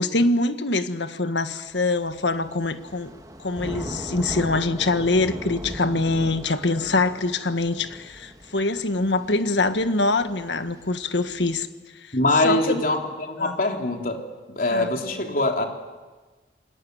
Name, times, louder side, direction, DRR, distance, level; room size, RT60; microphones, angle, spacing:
voice 1, 0.0-3.1 3.4-11.7 12.0-12.1 12.4-12.8 13.4-13.6 14.7-14.9, left 2 dB, 90° left, 10 dB, 1.6 m, -24 dB
Thunder / Rain, 1.7-11.6, right 1 dB, 20° right, 2.2 m, -39 dB
voice 2, 12.1-14.2 14.5-15.7, left 2 dB, 50° left, 3 dB, 3.5 m, -23 dB
27.5 x 21.5 x 9.5 m, 1.3 s
head